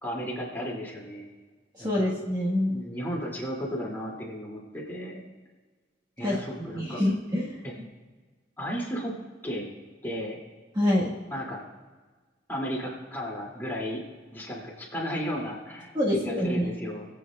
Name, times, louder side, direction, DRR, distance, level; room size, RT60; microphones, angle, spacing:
voice 1, 0.0-1.3 1.8-2.1 2.7-5.2 6.2-7.0 7.6-7.7 8.6-9.1 9.4-9.7 10.0-10.4 11.3-11.6 12.5-14.0 14.3-15.9 16.2-17.1, equal, 10° left, -3 dB, 2.7 m, -34 dB
voice 2, 1.8-2.8 6.2-6.4 6.7-7.4 10.8-11.1 15.9-16.7, left 1 dB, 25° right, -6 dB, 1.6 m, -25 dB
23.0 x 8.2 x 2.4 m, 1.4 s
head